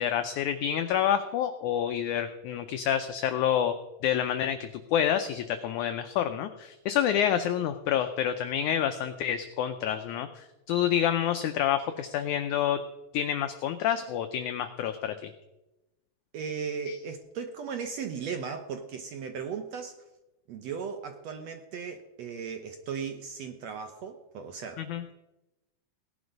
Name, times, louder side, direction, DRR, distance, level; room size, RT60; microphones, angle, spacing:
voice 1, 0.0-3.7 4.0-12.8 13.1-15.3 16.9-17.0 24.8-25.0, left 10 dB, 80° left, 8 dB, 1.8 m, -28 dB
voice 2, 16.3-20.0 20.5-24.8, right 6 dB, 75° right, 7 dB, 1.5 m, -37 dB
18.0 x 11.5 x 5.3 m, 0.99 s
omnidirectional pair, 4.3 m